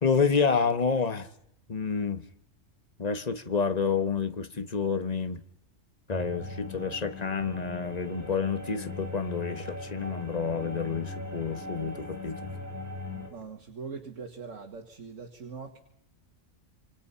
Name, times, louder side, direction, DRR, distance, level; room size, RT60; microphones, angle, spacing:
voice 1, 0.0-1.3 1.7-2.2 3.0-5.4 6.1-12.5, left 5 dB, 35° left, 11 dB, 1.3 m, -29 dB
sound 1, 6.1-13.3, left 2 dB, 15° right, 4.0 m, -39 dB
voice 2, 13.3-15.8, right 5 dB, 75° right, 3 dB, 2.1 m, -42 dB
27.5 x 26.5 x 5.7 m, 0.78 s
omnidirectional pair, 1.3 m